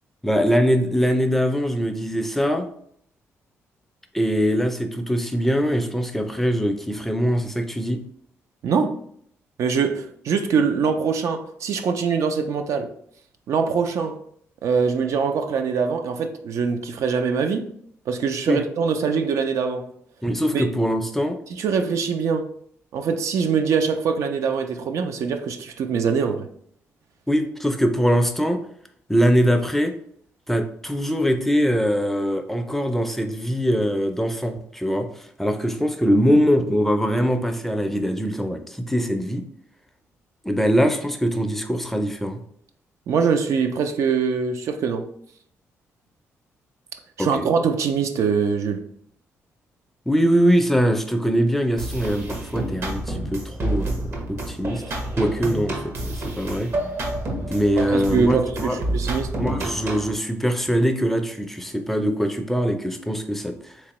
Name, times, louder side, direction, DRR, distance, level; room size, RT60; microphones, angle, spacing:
voice 1, 0.2-2.6 4.1-8.0 18.5-18.6 20.2-21.4 27.3-28.6 29.1-29.9 30.5-39.4 40.4-42.4 47.2-47.5 50.1-54.8 55.1-56.7 57.5-58.8 59.4-63.8, equal, 5° left, 0.4 m, -22 dB
voice 2, 8.6-9.0 9.6-12.9 13.5-14.2 14.6-17.7 18.1-19.8 20.5-20.6 21.5-22.5 22.9-26.5 43.1-45.0 47.2-48.8 57.8-59.3, right 5 dB, 70° right, 0.4 m, -23 dB
sound 1, 51.8-60.1, right 1 dB, 50° right, 0.8 m, -29 dB
3.5 x 2.9 x 3.0 m
cardioid pair, 95°, 5 cm